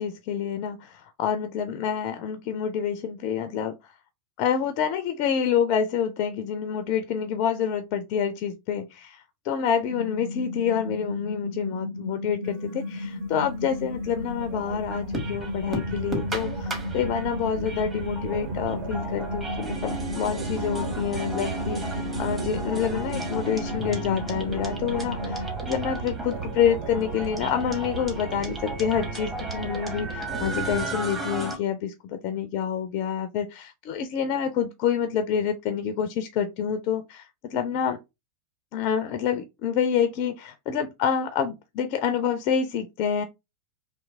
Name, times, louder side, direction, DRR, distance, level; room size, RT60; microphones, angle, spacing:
voice 1, 0.0-4.0 4.4-38.0 38.7-43.2, left 8 dB, 40° left, 0.4 m, -27 dB
sound 1, 9.9-25.5, left 2 dB, 85° right, 1.1 m, -34 dB
sound 2, 12.4-13.8 14.3-31.6, right 1 dB, 20° right, 1.2 m, -35 dB
sound 3, 13.1-30.9, right 10 dB, 50° right, 0.4 m, -37 dB
3.2 x 2.9 x 3.5 m
figure-of-eight pair, 90°, 0 cm